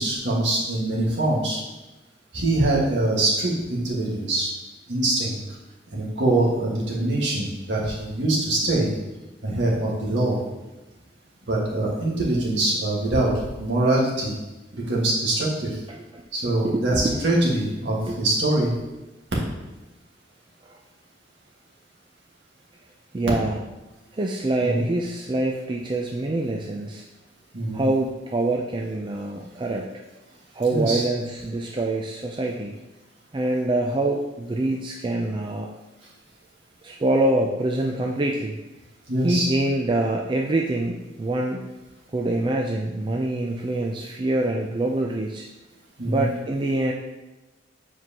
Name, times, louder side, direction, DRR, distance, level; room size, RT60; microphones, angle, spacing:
voice 1, 0.0-1.6 2.3-4.5 4.9-5.4 5.9-8.9 9.4-10.4 11.5-13.3 13.6-14.3 14.7-15.8 16.3-18.7 24.6-24.8 27.5-27.8 30.7-31.0 39.1-39.5 46.0-46.3, right 2 dB, 60° right, -4 dB, 1.7 m, -23 dB
voice 2, 15.9-16.2 16.6-17.2 18.1-18.2 20.6-20.8 23.1-23.6 24.1-27.0 27.7-29.9 30.6-32.8 33.3-35.7 36.8-38.6 39.2-41.6 42.1-45.5 46.1-46.9, right 2 dB, 25° right, 0 dB, 0.4 m, -25 dB
7.4 x 4.6 x 2.9 m, 1.1 s
head